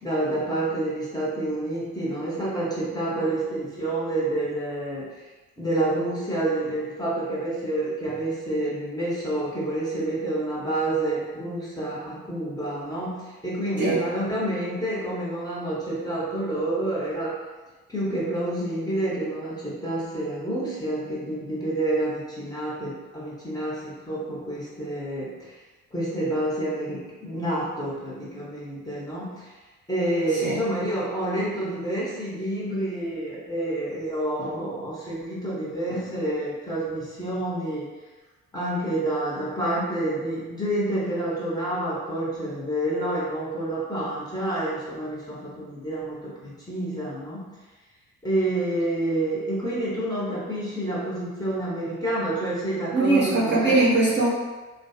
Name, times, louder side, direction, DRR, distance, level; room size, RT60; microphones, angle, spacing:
voice 1, 0.0-5.1 5.6-17.4 17.9-25.6 25.9-29.5 29.9-37.9 38.5-47.5 48.2-53.8, right 1 dB, 10° left, -8 dB, 0.9 m, -28 dB
voice 2, 52.9-54.3, right 2 dB, 25° right, -8 dB, 0.7 m, -21 dB
2.5 x 2.3 x 2.3 m, 1.2 s
figure-of-eight pair, 45°, 43 cm